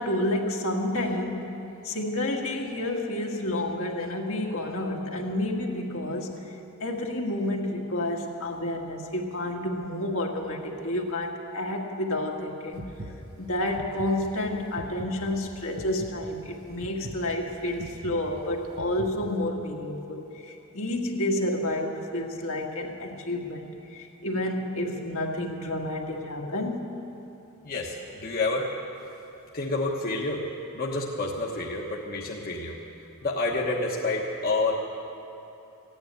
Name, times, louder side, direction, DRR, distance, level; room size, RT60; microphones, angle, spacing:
voice 1, 0.0-6.5 6.8-12.9 13.4-26.9, left 1 dB, 70° left, 0 dB, 1.6 m, -30 dB
sound 1, 12.7-19.5, right 1 dB, 70° right, 1.1 m, -42 dB
voice 2, 27.6-28.7 29.5-30.5 30.7-32.8 33.2-34.7, left 2 dB, 45° left, -2 dB, 1.1 m, -28 dB
15.5 x 9.7 x 9.3 m, 2.9 s
head